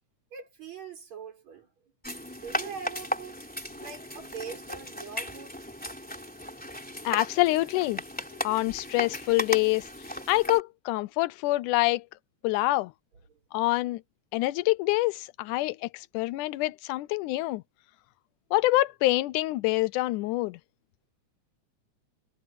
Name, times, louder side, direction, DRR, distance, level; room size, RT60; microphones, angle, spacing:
voice 1, 0.3-1.7 2.4-3.4 3.8-5.6 13.3-13.4, right 6 dB, 60° right, 6.0 m, -42 dB
sound 1, 2.0-10.6, left 1 dB, 5° left, 3.0 m, -36 dB
voice 2, 7.0-8.0 8.3-9.9 10.3-12.1 12.4-12.9 13.5-14.0 14.3-17.6 18.5-20.6, left 19 dB, 90° left, 2.1 m, -26 dB
omnidirectional pair, 3.5 m